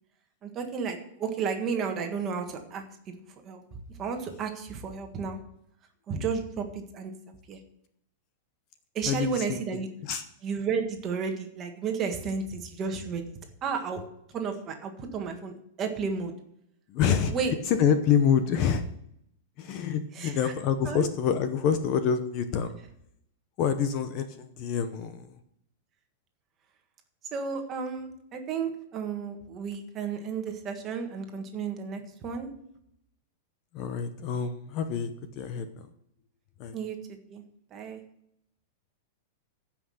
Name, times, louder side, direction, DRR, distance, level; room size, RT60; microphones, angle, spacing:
voice 1, 0.4-2.8 3.4-3.6 4.0-5.4 6.1-7.1 7.5-7.6 8.9-9.9 10.4-13.3 13.6-14.0 14.3-16.3 17.3-17.5 20.1-20.5 20.8-21.0 27.3-32.5 36.7-37.4 37.7-38.0, right 5 dB, 20° right, 4 dB, 1.6 m, -32 dB
voice 2, 9.0-10.2 16.9-17.3 17.7-18.9 19.6-22.7 23.6-25.4 33.7-35.1 35.4-35.7 36.6-36.8, left 7 dB, 30° left, 9 dB, 0.8 m, -27 dB
15.0 x 5.9 x 6.5 m, 0.74 s
supercardioid pair, 175°, 0 cm